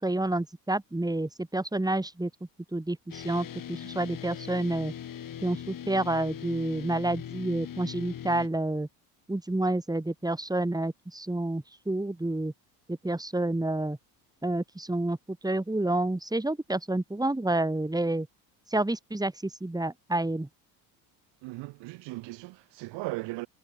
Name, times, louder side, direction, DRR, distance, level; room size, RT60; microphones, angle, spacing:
voice 1, 0.0-2.3 2.7-4.9 5.4-8.9 9.3-12.5 12.9-14.0 14.4-18.3 18.7-19.3 19.6-20.5, right 2 dB, 10° right, 6.2 m, -29 dB
sound 1, 3.1-8.5, left 9 dB, 50° left, 4.9 m, -40 dB
voice 2, 21.4-23.5, right 22 dB, 75° right, 6.4 m, -37 dB
supercardioid pair, 80°, 43 cm